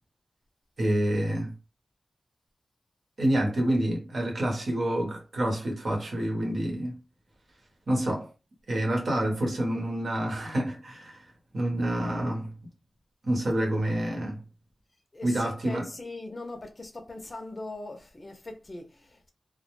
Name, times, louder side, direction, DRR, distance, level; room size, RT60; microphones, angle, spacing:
voice 1, 0.8-1.5 3.2-7.0 7.9-8.3 8.7-11.3 11.5-12.5 13.2-14.4 15.2-15.9, right 1 dB, 60° right, 1.0 m, -28 dB
voice 2, 15.1-19.3, left 2 dB, 35° left, 0.5 m, -40 dB
2.2 x 2.0 x 3.0 m
wide cardioid pair, 90°, 0 cm